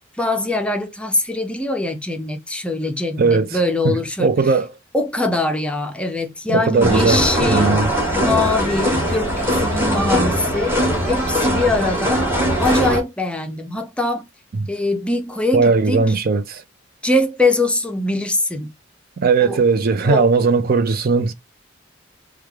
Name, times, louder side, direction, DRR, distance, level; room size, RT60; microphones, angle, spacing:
voice 1, 0.2-4.3 4.9-7.8 8.1-10.8 11.1-12.2 12.6-14.3 14.7-16.0 17.0-18.7 19.4-19.6 20.0-20.3, left 2 dB, 5° left, 0.5 m, -22 dB
voice 2, 3.2-3.6 3.8-4.7 6.5-7.9 14.5-14.7 15.5-16.6 19.2-21.3, right 4 dB, 50° right, 0.4 m, -18 dB
sound 1, 6.8-13.0, equal, 10° right, 1.2 m, -20 dB
3.2 x 2.3 x 3.4 m
head